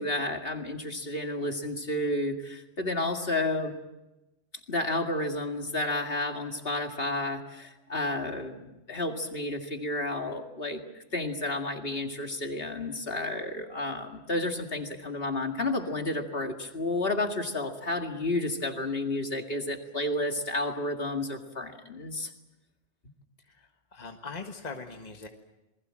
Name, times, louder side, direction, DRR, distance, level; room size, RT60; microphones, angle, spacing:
voice 1, 0.0-3.7 4.7-10.8 11.1-22.3, left 2 dB, 55° left, 4 dB, 2.3 m, -31 dB
voice 2, 23.4-25.3, left 4 dB, 35° left, 4 dB, 1.8 m, -41 dB
28.0 x 21.0 x 7.6 m, 0.97 s
omnidirectional pair, 1.2 m